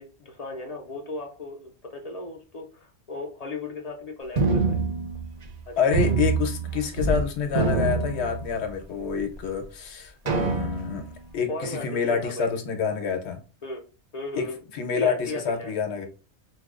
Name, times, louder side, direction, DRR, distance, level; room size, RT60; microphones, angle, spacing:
voice 1, 0.0-4.8 5.7-5.8 11.5-12.5 13.6-13.8 14.1-14.6 15.0-15.7, left 2 dB, 45° left, 0.5 m, -36 dB
sound 1, 4.4-5.6 5.9-7.2 7.5-8.8 9.4-9.5 10.3-11.1, right 4 dB, 45° right, 0.6 m, -25 dB
voice 2, 5.8-13.4 14.3-14.5 14.7-16.1, left 6 dB, 70° left, 1.0 m, -27 dB
4.4 x 2.3 x 2.3 m
omnidirectional pair, 1.2 m